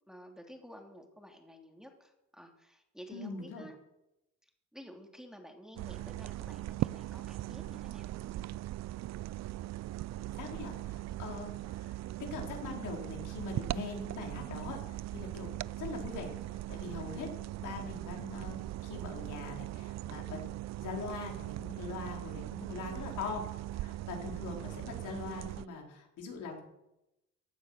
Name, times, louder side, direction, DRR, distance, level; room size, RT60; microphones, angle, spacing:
voice 1, 0.1-3.8 4.7-8.1, equal, ahead, 2 dB, 3.0 m, -52 dB
voice 2, 3.1-3.7 10.4-12.0 12.3-17.3 17.6-20.4 20.8-23.5 23.7-26.6, left 4 dB, 80° left, 0 dB, 4.4 m, -42 dB
sound 1, 5.8-25.7, right 15 dB, 60° right, 0.5 m, -40 dB
16.0 x 10.0 x 6.6 m, 0.91 s
cardioid pair, 90°, 30 cm